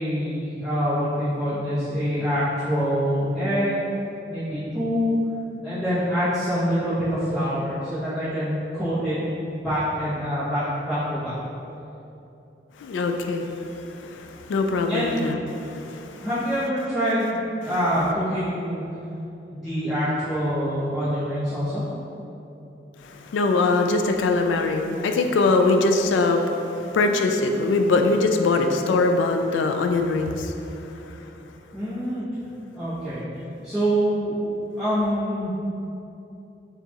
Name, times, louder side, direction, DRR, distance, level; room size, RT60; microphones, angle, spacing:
voice 1, 0.0-3.9 4.3-5.2 5.6-9.2 9.5-11.3 14.9-15.2 16.2-18.8 19.5-21.8 31.7-32.2 32.7-33.2 33.6-34.3 34.7-35.5, equal, ahead, -17 dB, 0.9 m, -25 dB
voice 2, 12.8-16.3 23.0-31.2, left 3 dB, 85° left, 5 dB, 0.3 m, -23 dB
6.6 x 2.4 x 2.8 m, 2.9 s
head